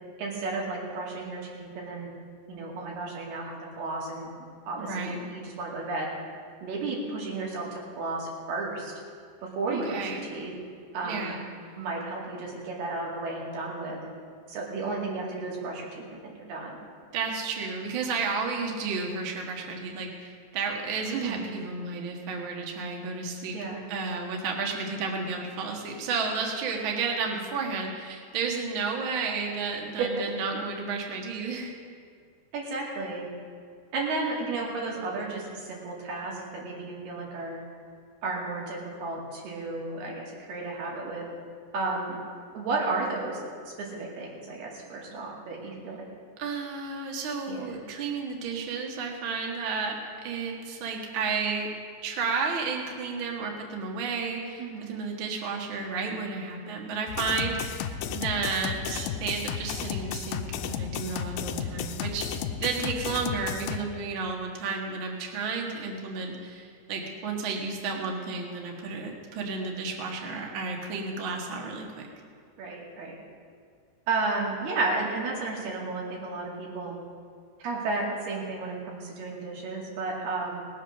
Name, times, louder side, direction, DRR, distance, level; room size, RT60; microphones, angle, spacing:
voice 1, 0.2-2.1 2.5-4.3 4.7-6.1 6.6-8.9 9.4-10.5 10.9-11.3 11.8-14.1 14.5-16.8 21.1-21.4 23.5-23.8 30.0-30.1 32.5-33.3 33.9-37.6 38.2-41.3 41.7-42.2 42.5-43.5 43.8-46.1 47.5-47.8 54.6-54.9 57.3-57.5 72.6-73.2 74.1-77.0 77.6-80.6, right 3 dB, 65° right, -3 dB, 4.2 m, -33 dB
voice 2, 4.7-5.2 9.7-10.2 11.0-11.4 17.1-23.6 23.9-31.7 46.4-50.0 50.2-51.7 52.0-57.8 58.1-72.1, right 4 dB, 85° right, 0 dB, 1.1 m, -32 dB
sound 1, 57.1-63.8, left 8 dB, 85° left, 2.2 m, -33 dB
18.5 x 7.8 x 6.5 m, 2.2 s
omnidirectional pair, 5.0 m